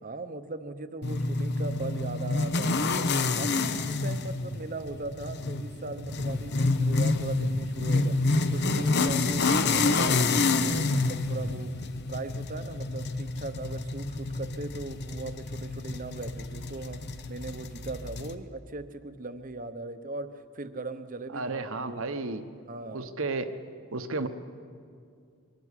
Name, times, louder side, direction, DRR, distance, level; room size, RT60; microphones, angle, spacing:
voice 1, 0.0-8.2 8.5-9.5 9.7-11.7 12.1-17.0 17.3-22.0 22.7-23.1, right 2 dB, 35° right, 10 dB, 0.9 m, -39 dB
sound 1, 1.0-18.3, left 3 dB, 50° left, 0.9 m, -28 dB
voice 2, 21.3-22.4 22.9-23.5 23.9-24.3, right 3 dB, 65° right, 9 dB, 1.1 m, -32 dB
24.0 x 12.0 x 9.9 m, 2.3 s
head